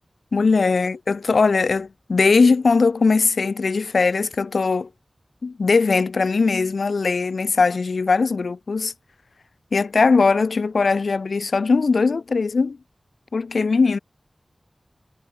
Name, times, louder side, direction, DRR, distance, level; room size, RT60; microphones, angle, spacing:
voice 1, 0.3-4.9 5.4-8.9 9.7-12.8 13.3-14.0, left 4 dB, 90° left, 0.7 m, -20 dB
wide cardioid pair, 60°, 0 cm